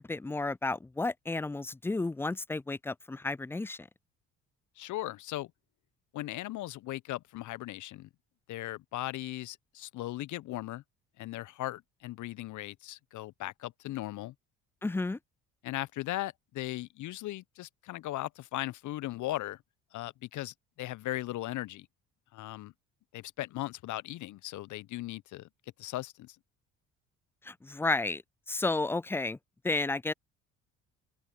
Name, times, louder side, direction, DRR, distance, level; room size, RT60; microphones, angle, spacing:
voice 1, 0.0-3.9 14.8-15.2 27.5-28.2 28.5-29.4 29.6-30.1, left 3 dB, 5° left, 0.4 m, -32 dB
voice 2, 4.8-5.5 6.1-8.1 8.5-10.8 11.2-14.3 15.6-19.6 19.9-21.9 22.3-22.7 23.1-25.5 25.8-26.4, left 16 dB, 55° left, 0.9 m, -38 dB
open air
hypercardioid pair, 55°, 35 cm